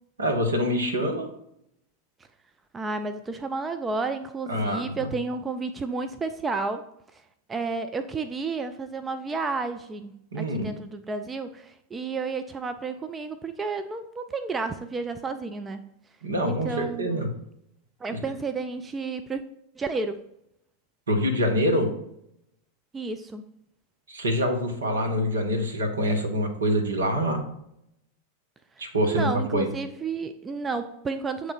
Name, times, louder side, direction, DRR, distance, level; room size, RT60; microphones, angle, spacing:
voice 1, 0.2-1.3 4.5-4.9 10.3-10.7 16.2-17.3 21.1-21.9 24.1-27.4 28.8-29.7, equal, 70° right, 4 dB, 1.1 m, -25 dB
voice 2, 2.7-6.9 7.1-7.2 7.5-15.9 16.5-17.3 18.0-19.4 19.8-20.2 22.9-23.4 28.8-31.5, right 4 dB, 15° right, 9 dB, 0.3 m, -31 dB
7.5 x 3.2 x 4.1 m, 0.77 s
figure-of-eight pair, 90°, 0 cm